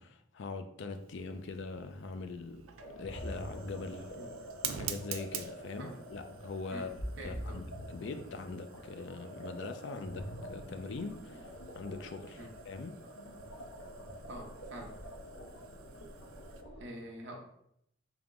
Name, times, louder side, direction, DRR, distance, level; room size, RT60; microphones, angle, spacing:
voice 1, 0.0-2.7 3.0-4.1 4.8-6.9 7.2-11.5 11.7-12.4 12.7-13.0, left 4 dB, 55° left, 0.4 m, -42 dB
Fire, 0.9-16.6, right 8 dB, 75° right, 0.4 m, -48 dB
sound 1, 2.8-16.8, equal, 80° left, 0.9 m, -46 dB
voice 2, 7.2-7.6 12.4-12.5 14.3-14.9 16.8-17.4, right 1 dB, 55° right, 0.9 m, -45 dB
3.6 x 2.9 x 3.5 m
head